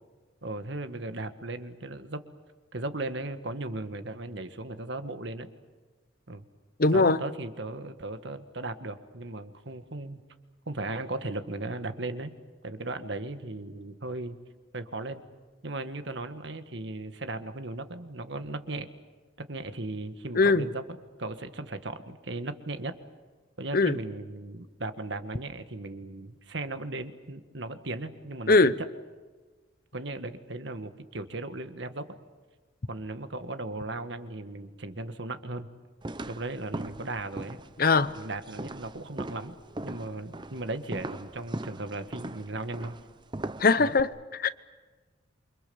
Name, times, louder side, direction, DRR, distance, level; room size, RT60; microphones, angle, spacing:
voice 1, 0.4-2.2 2.7-5.5 6.3-6.4 6.9-10.2 10.7-12.3 12.6-14.4 14.7-15.2 15.6-18.9 19.5-20.8 21.2-22.9 23.6-28.7 29.9-32.2 32.9-35.7 36.2-37.6 38.1-39.6 39.8-43.0 43.8-43.9, right 2 dB, 65° right, 1.7 m, -37 dB
voice 2, 6.8-7.2 20.3-20.6 23.7-24.0 28.5-28.8 37.8-38.1 43.6-44.6, left 3 dB, 50° left, 0.8 m, -21 dB
sound 1, 36.0-44.0, right 1 dB, 25° right, 0.7 m, -40 dB
28.5 x 25.0 x 7.1 m
head